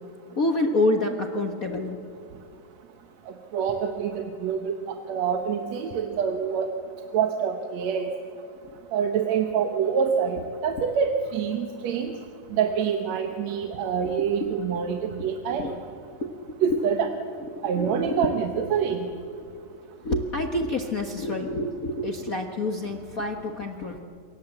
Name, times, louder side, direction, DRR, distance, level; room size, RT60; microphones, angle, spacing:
voice 1, 0.3-2.0 14.0-14.5 15.5-15.7 16.2-16.5 17.8-18.3 20.0-24.0, left 1 dB, 45° left, 4 dB, 1.2 m, -27 dB
voice 2, 3.3-4.8 5.1-6.7 7.1-8.1 8.9-12.1 12.5-15.8 16.6-17.1 17.6-19.1, right 7 dB, 70° right, 5 dB, 2.4 m, -26 dB
28.0 x 23.5 x 7.9 m, 2.4 s
omnidirectional pair, 3.3 m